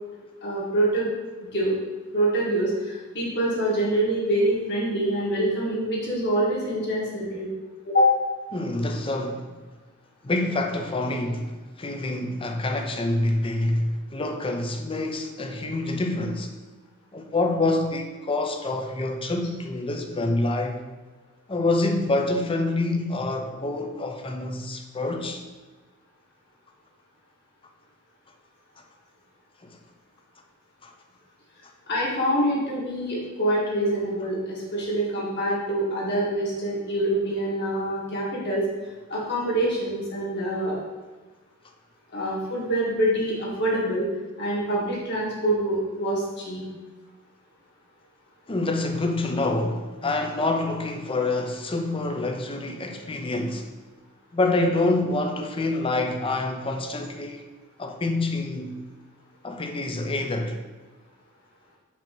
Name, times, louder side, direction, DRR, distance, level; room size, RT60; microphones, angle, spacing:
voice 1, 0.4-1.1 1.5-1.8 2.1-7.5 7.9-8.1 31.9-38.6 39.1-40.8 42.1-44.1 44.4-46.6, right 1 dB, 55° left, 2.2 m, -25 dB
voice 2, 8.5-9.6 10.2-16.5 17.1-20.8 21.5-25.4 29.6-29.8 30.8-30.9 48.5-53.7 54.3-57.4 57.8-58.8 59.4-60.6, left 2 dB, 25° left, 0.7 m, -27 dB
7.3 x 3.0 x 6.0 m
head